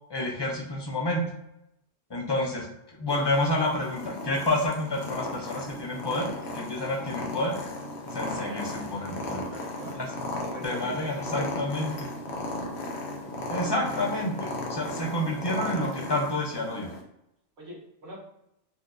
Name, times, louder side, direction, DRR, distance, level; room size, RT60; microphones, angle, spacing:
voice 1, 0.1-1.2 2.1-2.7 2.9-6.3 6.5-7.5 8.1-9.4 9.9-10.1 10.6-12.1 13.5-16.9, left 1 dB, 35° left, -1 dB, 0.4 m, -29 dB
voice 2, 2.1-2.5 8.0-8.7 9.1-10.0 10.4-11.5 14.9-15.3 17.6-18.2, right 1 dB, 65° right, -5 dB, 1.5 m, -43 dB
Purr, 3.1-17.0, left 2 dB, 65° left, 0.9 m, -36 dB
4.3 x 2.5 x 2.3 m, 0.82 s
omnidirectional pair, 1.2 m